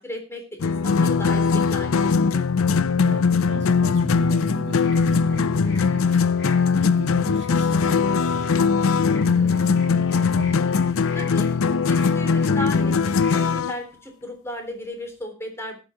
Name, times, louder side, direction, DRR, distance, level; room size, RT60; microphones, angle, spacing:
voice 1, 0.0-2.0 2.3-2.5 11.1-11.5 11.9-15.8, left 1 dB, 10° left, 3 dB, 3.5 m, -35 dB
sound 1, 0.6-13.7, left 5 dB, 80° left, 0.5 m, -20 dB
voice 2, 3.0-10.6, right 1 dB, 55° right, 4 dB, 2.2 m, -36 dB
sound 2, 4.6-13.5, left 4 dB, 55° left, 2.7 m, -45 dB
13.5 x 9.1 x 4.9 m, 0.31 s
head